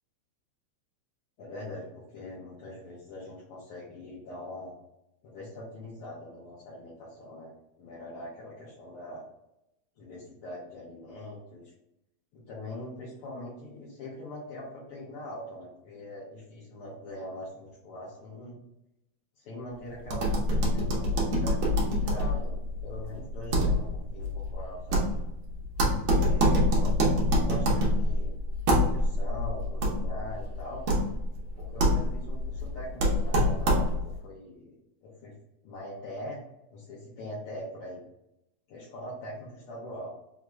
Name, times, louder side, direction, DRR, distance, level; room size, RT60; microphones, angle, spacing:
voice 1, 1.4-4.8 5.2-7.5 7.8-9.2 10.0-11.7 12.3-18.6 19.4-25.1 26.2-28.3 28.7-30.8 31.6-34.8 35.0-35.3 35.6-36.4 36.7-38.0 38.7-40.1, left 1 dB, 70° left, -6 dB, 1.4 m, -42 dB
sound 1, 20.0-34.2, equal, 70° right, 1.2 m, -26 dB
4.6 x 2.4 x 3.1 m, 0.86 s
omnidirectional pair, 3.4 m